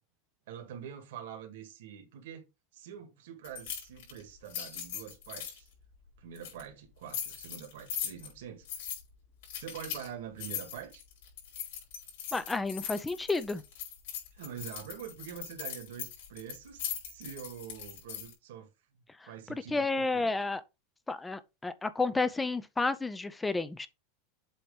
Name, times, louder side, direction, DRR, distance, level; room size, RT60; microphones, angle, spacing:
voice 1, 0.5-2.5 2.7-5.7 6.2-8.7 9.6-11.0 14.3-18.7 19.3-20.3, right 8 dB, 80° right, 2.0 m, -45 dB
sound 1, 3.4-5.6 6.3-6.6 7.1-8.3 8.6-9.0 9.4-10.1 10.4-18.3, left 9 dB, 75° left, 4.1 m, -40 dB
voice 2, 12.3-13.6 19.2-20.6 21.1-23.9, left 3 dB, 10° left, 0.5 m, -31 dB
7.8 x 3.0 x 5.2 m
supercardioid pair, 150°, 0 cm